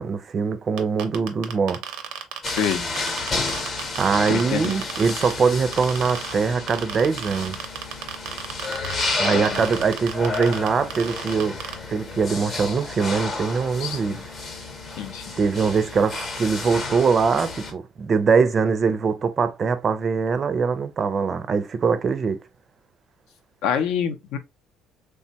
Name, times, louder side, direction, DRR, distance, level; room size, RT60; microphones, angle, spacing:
voice 1, 0.0-1.8 4.0-7.6 9.2-11.6 11.9-14.2 15.4-22.4, right 5 dB, 35° right, 0.4 m, -22 dB
sound 1, 0.8-5.3 5.7-6.3 6.7-11.7, right 11 dB, 85° right, 0.5 m, -33 dB
sound 2, 2.4-17.7, left 3 dB, 35° left, 0.8 m, -31 dB
voice 2, 2.5-2.9 4.3-4.8 9.3-9.6 13.8-14.2 15.0-15.3 23.6-24.4, left 8 dB, 75° left, 0.5 m, -27 dB
3.2 x 2.2 x 2.7 m
cardioid pair, 120°, 0 cm